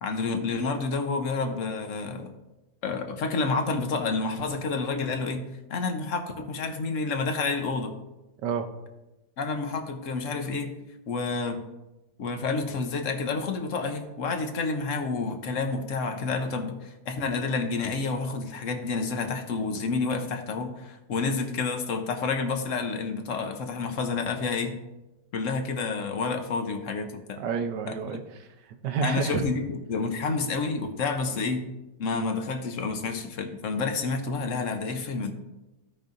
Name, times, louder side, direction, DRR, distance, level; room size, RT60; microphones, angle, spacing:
voice 1, 0.0-2.3 2.8-7.9 9.4-10.7 11.1-11.6 12.2-24.8 25.3-27.4 27.9-28.0 29.0-31.7 32.0-35.3, left 4 dB, 55° left, 6 dB, 1.1 m, -29 dB
voice 2, 27.4-28.5 28.8-29.5, right 6 dB, 90° right, 7 dB, 1.4 m, -29 dB
15.5 x 5.3 x 2.6 m, 1.0 s
omnidirectional pair, 1.8 m